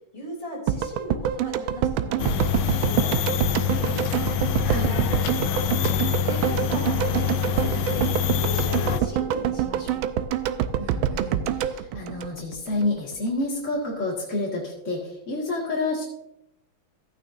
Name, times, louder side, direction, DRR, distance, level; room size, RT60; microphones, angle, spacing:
voice 1, 0.1-4.0 4.7-10.0, equal, 15° left, -3 dB, 3.5 m, -38 dB
sound 1, 0.7-12.9 13.1-13.2, right 10 dB, 85° right, 1.4 m, -26 dB
sound 2, 2.2-9.0, left 8 dB, 80° left, 1.4 m, -25 dB
voice 2, 4.6-4.9 10.8-16.0, left 2 dB, 35° left, -5 dB, 2.3 m, -29 dB
14.0 x 9.1 x 2.7 m, 0.84 s
omnidirectional pair, 2.2 m